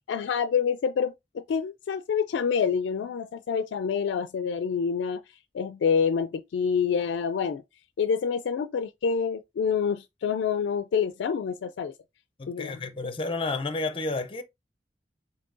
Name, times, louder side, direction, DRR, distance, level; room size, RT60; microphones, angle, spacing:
voice 1, 0.1-5.2 5.5-7.6 8.0-11.9 12.5-12.9, left 6 dB, 85° left, 0.3 m, -27 dB
voice 2, 12.4-14.4, left 3 dB, 30° left, 0.5 m, -31 dB
7.2 x 2.7 x 2.5 m
head